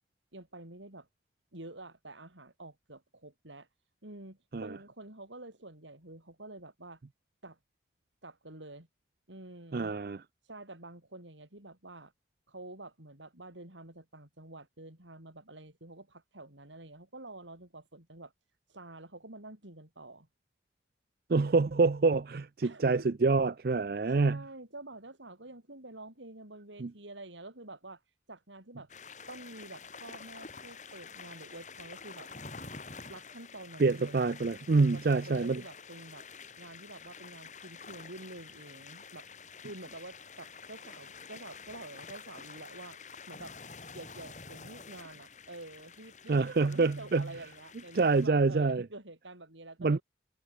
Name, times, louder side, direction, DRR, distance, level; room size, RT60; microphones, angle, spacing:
voice 1, 0.3-1.1 1.5-3.7 4.0-7.0 7.4-7.6 8.2-8.9 9.3-10.0 10.4-12.1 12.5-18.3 18.7-20.3 22.6-23.1 24.1-28.9 29.3-32.3 33.1-34.2 34.7-36.2 36.6-39.3 39.6-43.0 43.3-43.5 43.9-50.0, right 2 dB, 90° right, 6.4 m, -48 dB
voice 2, 9.7-10.2 21.3-24.4 26.8-26.9 33.8-35.6 46.3-47.3 47.9-48.8 49.8-50.0, right 3 dB, 55° right, 0.5 m, -26 dB
sound 1, 28.9-48.3, left 5 dB, 40° left, 6.2 m, -49 dB
head